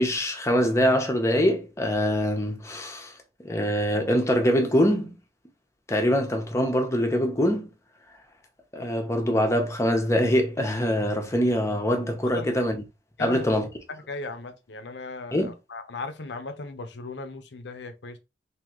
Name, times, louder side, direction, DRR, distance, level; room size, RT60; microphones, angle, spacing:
voice 1, 0.0-3.1 3.4-5.2 5.9-7.7 8.7-12.8 13.2-13.7 15.3-15.5, equal, 15° left, 0.8 m, -24 dB
voice 2, 14.1-15.4 15.7-18.2, left 3 dB, 80° left, 0.7 m, -37 dB
3.7 x 2.8 x 3.0 m
head